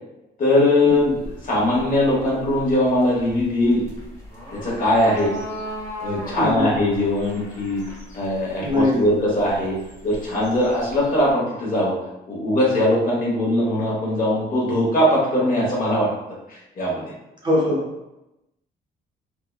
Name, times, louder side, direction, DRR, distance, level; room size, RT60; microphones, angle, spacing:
voice 1, 0.4-3.8 4.5-5.4 6.0-7.8 8.1-9.8 10.0-11.9 12.3-16.1 16.5-17.1, left 1 dB, 45° left, -4 dB, 1.0 m, -20 dB
sound 1, 0.9-11.3, equal, 15° left, 1.2 m, -38 dB
voice 2, 6.4-6.7 8.6-9.1 17.4-17.8, left 1 dB, 20° right, -4 dB, 0.7 m, -21 dB
2.8 x 2.1 x 2.3 m, 0.94 s
cardioid pair, 90°, 20 cm